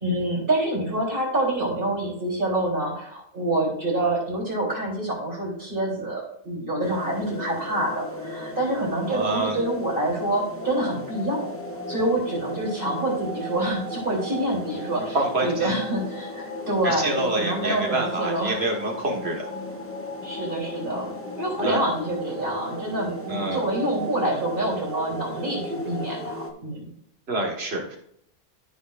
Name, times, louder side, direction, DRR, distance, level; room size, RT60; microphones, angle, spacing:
voice 1, 0.0-11.5 11.9-18.6 20.2-26.9, right 1 dB, 50° right, -5 dB, 3.9 m, -27 dB
sound 1, 6.8-26.5, equal, 15° left, 1.0 m, -35 dB
voice 2, 9.0-9.6 15.1-15.8 16.8-19.5 21.6-21.8 23.3-23.6 27.3-28.0, right 2 dB, 70° right, 1 dB, 2.0 m, -27 dB
14.0 x 5.8 x 2.6 m, 0.70 s
omnidirectional pair, 1.1 m